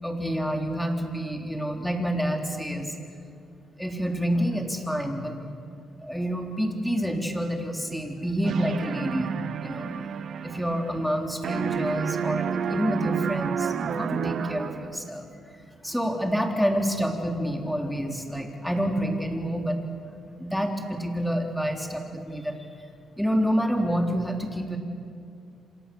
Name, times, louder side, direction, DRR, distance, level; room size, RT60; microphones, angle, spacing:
voice 1, 0.0-2.9 3.8-5.4 6.0-9.3 9.6-9.9 10.4-15.3 15.8-19.8 20.4-22.5 23.2-24.8, equal, ahead, 2 dB, 3.8 m, -28 dB
sound 1, 8.4-11.2 11.4-15.0, right 7 dB, 60° right, 1.2 m, -30 dB
29.0 x 26.0 x 7.1 m, 2.4 s
cardioid pair, 90°, 0 cm